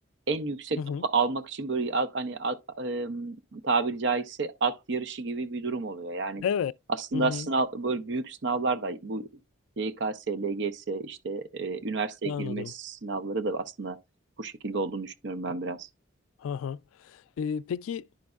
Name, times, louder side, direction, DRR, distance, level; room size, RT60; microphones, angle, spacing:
voice 1, 0.3-6.4 7.0-9.3 9.8-14.0 14.4-15.9, right 3 dB, 55° right, 0.6 m, -30 dB
voice 2, 6.4-6.7 7.1-7.5 12.2-12.7 16.4-16.8 17.0-18.1, left 7 dB, 85° left, 0.3 m, -31 dB
10.5 x 5.1 x 2.3 m
head